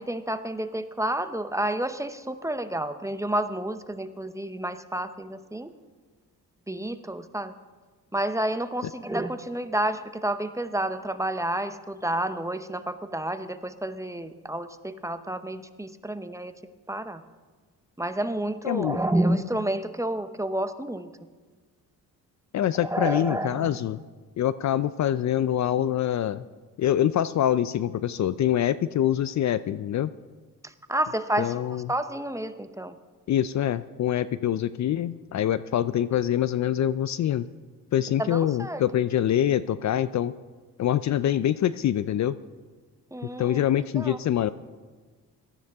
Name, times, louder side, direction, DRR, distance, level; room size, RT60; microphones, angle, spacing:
voice 1, 0.0-5.7 6.7-7.5 8.1-16.5 16.9-17.2 18.0-21.1 22.8-23.8 30.6-31.6 31.9-32.9 38.2-38.8 43.1-43.6 44.0-44.2, right 1 dB, 10° right, 10 dB, 0.7 m, -30 dB
voice 2, 18.6-19.0 22.5-24.0 24.4-26.4 26.8-30.1 31.4-31.9 33.3-37.5 37.9-40.3 40.8-42.4 43.4-44.5, left 11 dB, 50° left, 15 dB, 0.4 m, -25 dB
18.0 x 13.0 x 3.5 m, 1.4 s
cardioid pair, 85°, 36 cm